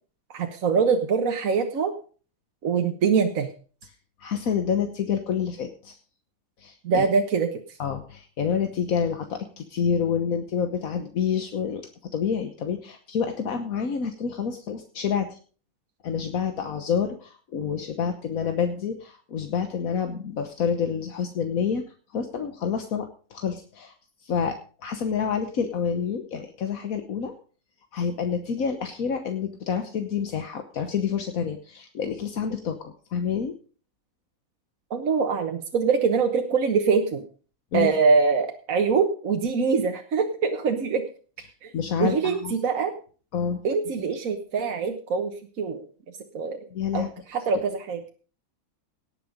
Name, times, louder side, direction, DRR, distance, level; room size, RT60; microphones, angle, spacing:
voice 1, 0.3-1.9 2.6-3.5 6.8-7.5 34.9-37.2 37.7-41.1 41.6-41.7 42.0-42.9 43.6-45.9 46.3-46.6 46.9-48.0, right 5 dB, 70° right, 4 dB, 1.5 m, -24 dB
voice 2, 4.2-6.0 6.6-7.0 7.8-15.4 16.0-21.8 22.1-23.9 24.2-27.3 27.9-33.5 37.7-37.9 41.7-42.5 43.3-43.6 46.7-47.1, left 7 dB, 75° left, 6 dB, 1.5 m, -28 dB
17.5 x 6.9 x 5.1 m, 0.40 s
omnidirectional pair, 1.5 m